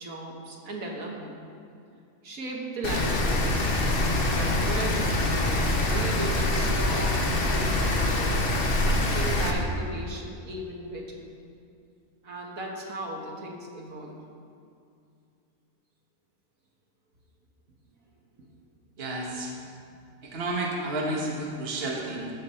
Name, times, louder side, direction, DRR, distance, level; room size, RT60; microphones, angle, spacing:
voice 1, 0.0-1.4 2.2-3.7 4.2-8.4 9.1-11.2 12.2-14.2, right 1 dB, 65° right, -1 dB, 1.8 m, -36 dB
Rain, 2.8-9.5, left 1 dB, 40° left, 1.1 m, -25 dB
voice 2, 19.0-19.5 20.2-22.3, right 2 dB, 45° right, -2 dB, 1.4 m, -31 dB
14.5 x 7.4 x 4.3 m, 2.5 s
omnidirectional pair, 1.6 m